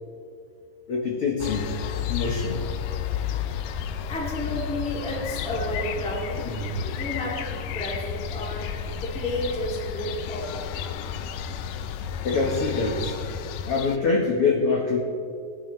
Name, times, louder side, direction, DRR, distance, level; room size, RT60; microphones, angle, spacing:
voice 1, 0.9-1.7 2.1-2.7 6.4-6.9 12.2-13.2 13.7-15.0, left 4 dB, 70° left, -2 dB, 1.3 m, -25 dB
sound 1, 1.4-14.0, left 9 dB, 85° left, 1.9 m, -32 dB
voice 2, 4.0-6.5 6.8-10.8, equal, 5° left, -4 dB, 0.9 m, -32 dB
21.0 x 11.0 x 3.2 m, 2.4 s
omnidirectional pair, 4.5 m